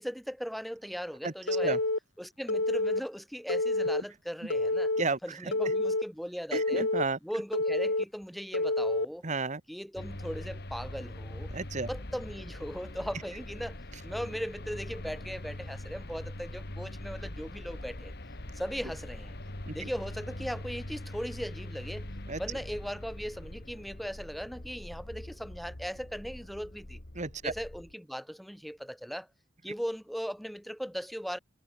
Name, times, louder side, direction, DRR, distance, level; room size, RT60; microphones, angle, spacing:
voice 1, 0.0-1.8 2.2-4.9 5.2-6.9 7.2-9.2 9.7-11.5 11.9-13.8 14.0-18.1 18.5-19.3 19.7-22.0 22.4-27.0 27.4-29.3 29.6-31.4, equal, ahead, 3.2 m, -38 dB
Telephone, 1.5-2.0 2.5-3.0 3.5-4.0 4.5-5.0 5.5-6.0 6.5-7.0 7.5-8.0 8.5-9.0, left 2 dB, 70° left, 3.5 m, -28 dB
voice 2, 5.0-5.5 6.5-7.2 9.2-9.6 11.5-11.9 19.7-19.9 22.3-22.4 27.1-27.5, right 3 dB, 40° right, 1.4 m, -32 dB
sound 1, 10.0-27.9, left 1 dB, 55° left, 2.4 m, -42 dB
head